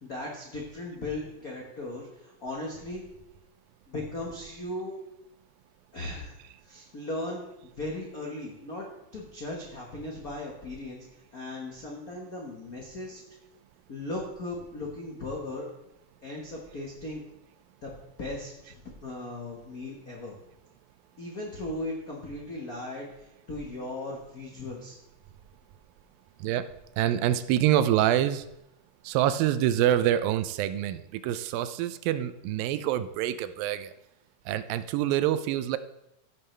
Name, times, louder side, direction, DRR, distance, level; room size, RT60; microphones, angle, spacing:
voice 1, 0.0-3.1 3.9-4.9 5.9-6.4 6.6-8.9 9.1-11.0 11.3-13.2 13.9-15.7 16.2-17.2 17.8-20.4 21.2-25.0, left 2 dB, 85° left, -2 dB, 0.8 m, -37 dB
voice 2, 27.0-28.4 29.0-33.9 34.5-35.8, right 12 dB, 85° right, 12 dB, 2.3 m, -26 dB
15.5 x 7.3 x 3.3 m, 0.84 s
omnidirectional pair, 4.1 m